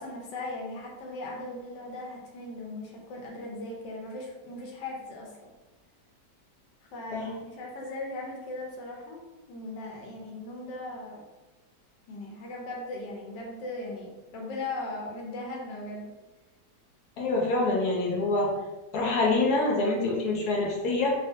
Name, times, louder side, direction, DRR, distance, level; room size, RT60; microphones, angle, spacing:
voice 1, 0.0-5.5 6.9-9.2 9.5-11.3 12.1-16.1, left 2 dB, 90° left, -1 dB, 1.4 m, -38 dB
voice 2, 17.2-18.5 18.9-21.1, left 2 dB, 70° left, -2 dB, 1.1 m, -26 dB
3.5 x 2.4 x 2.6 m, 1.2 s
omnidirectional pair, 1.8 m